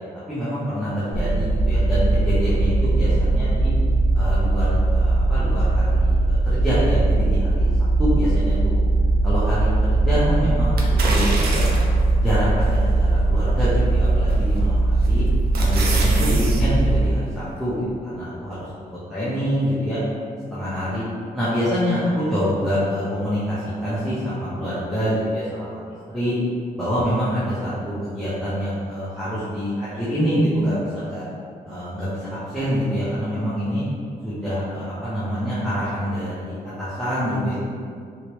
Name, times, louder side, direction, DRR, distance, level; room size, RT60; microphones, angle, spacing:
voice 1, 0.3-3.7 4.1-7.7 8.0-8.8 9.2-11.8 12.2-15.2 15.6-18.7 19.1-20.0 20.5-21.0 21.3-25.8 26.1-26.4 26.8-31.2 31.6-33.8 34.2-37.7, equal, ahead, -12 dB, 0.6 m, -26 dB
sound 1, 1.1-17.0, right 2 dB, 45° right, 1.1 m, -19 dB
sound 2, 10.8-12.0 12.6-12.7 14.3-14.6 15.0-16.6 17.0-17.1, right 3 dB, 85° right, 0.5 m, -28 dB
3.1 x 2.8 x 3.0 m, 2.3 s
wide cardioid pair, 180°, 16 cm